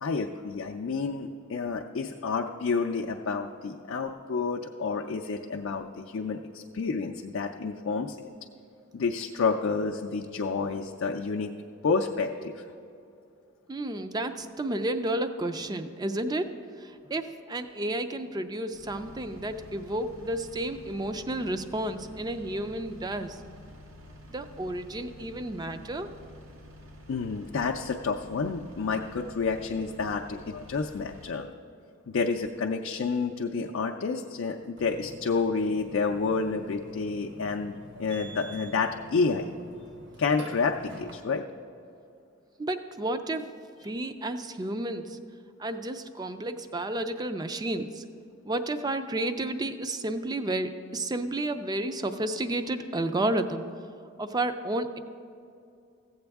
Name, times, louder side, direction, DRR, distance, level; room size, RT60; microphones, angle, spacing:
voice 1, 0.0-8.2 8.9-11.5 11.8-12.6 27.1-31.5 32.1-39.5 40.2-41.4, left 4 dB, 70° left, 3 dB, 0.4 m, -29 dB
voice 2, 13.7-16.5 16.8-23.4 24.3-26.1 42.6-43.5 43.8-45.2 45.6-48.0 48.4-53.7 54.2-55.0, right 1 dB, 20° right, 9 dB, 0.4 m, -31 dB
Engine, 18.7-31.4, left 1 dB, 85° right, 1.1 m, -49 dB
Burping eructation, 34.8-41.1, right 1 dB, 60° right, 1.1 m, -47 dB
15.0 x 7.9 x 3.5 m, 2.5 s
head